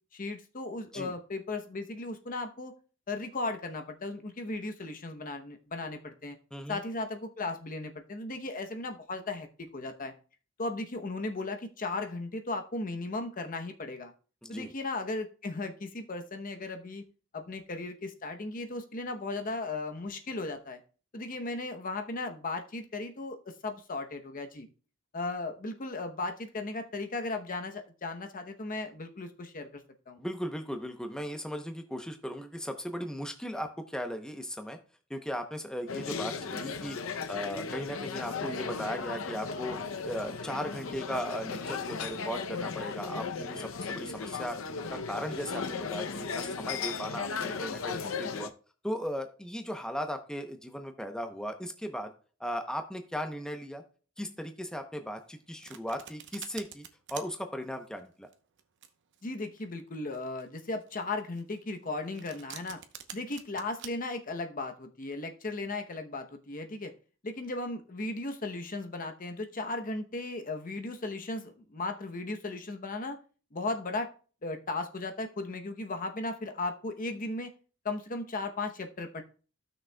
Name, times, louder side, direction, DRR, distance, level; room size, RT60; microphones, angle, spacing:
voice 1, 0.1-2.7 3.1-6.4 6.7-10.1 10.6-14.1 14.5-17.1 17.3-20.8 21.1-24.7 25.1-30.2 59.2-62.8 63.1-66.9 67.2-73.2 73.5-74.1 74.4-77.5 77.8-79.2, left 2 dB, 45° left, 6 dB, 0.8 m, -36 dB
voice 2, 30.2-34.8 35.1-39.8 40.0-44.6 44.9-48.5 48.8-52.1 52.4-53.8 54.2-58.3, equal, 5° left, 5 dB, 0.7 m, -37 dB
sound 1, 35.9-48.5, left 5 dB, 85° left, 0.6 m, -36 dB
Domestic sounds home sounds, 55.2-63.9, right 9 dB, 65° right, 0.8 m, -47 dB
15.5 x 6.2 x 2.2 m, 0.38 s
head